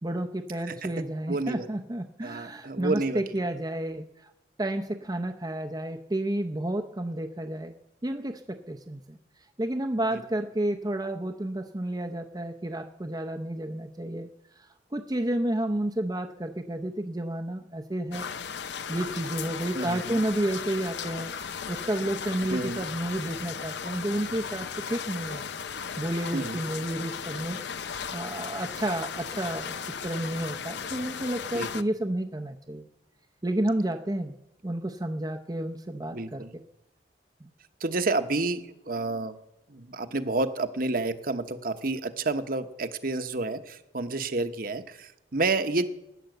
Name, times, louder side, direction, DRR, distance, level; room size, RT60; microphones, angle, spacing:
voice 1, 0.0-4.3 4.6-7.7 8.0-9.2 9.6-14.3 14.6-18.3 18.9-21.3 21.7-25.4 25.7-32.9 33.4-34.4 34.6-36.5 37.4-37.5, right 1 dB, 20° right, 4 dB, 0.6 m, -31 dB
voice 2, 1.3-1.7 2.2-3.2 10.1-10.2 19.7-20.2 22.5-22.8 26.3-26.6 31.5-31.8 36.1-36.5 37.8-39.3 39.7-45.9, right 3 dB, 50° right, 8 dB, 1.0 m, -30 dB
Ambience Rain Heavy B, 18.1-31.8, left 6 dB, 70° left, 0.6 m, -36 dB
16.5 x 10.0 x 7.9 m, 0.91 s
head